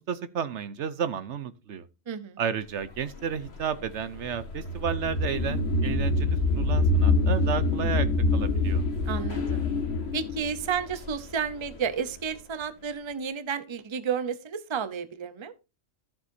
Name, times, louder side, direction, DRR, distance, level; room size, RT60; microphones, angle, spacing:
voice 1, 0.0-1.8 2.4-8.1 8.3-8.8, right 7 dB, 65° right, 1.0 m, -32 dB
voice 2, 2.1-2.4 9.1-9.7 10.1-15.5, right 7 dB, 25° right, 0.7 m, -32 dB
sound 1, 3.0-12.0, left 2 dB, 50° left, 1.9 m, -26 dB
14.0 x 7.6 x 2.7 m
omnidirectional pair, 1.3 m